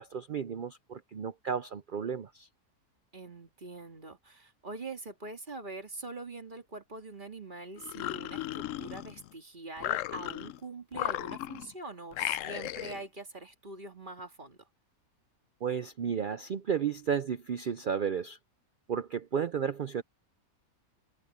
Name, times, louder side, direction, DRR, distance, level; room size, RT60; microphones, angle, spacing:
voice 1, 0.0-2.5 15.6-18.4 18.9-20.0, right 7 dB, 60° right, 0.5 m, -33 dB
voice 2, 3.1-14.7, right 2 dB, 35° right, 2.6 m, -43 dB
sound 1, 7.8-9.3 9.8-10.6 10.9-11.7 12.1-13.0, left 13 dB, 70° left, 0.9 m, -35 dB
omnidirectional pair, 1.5 m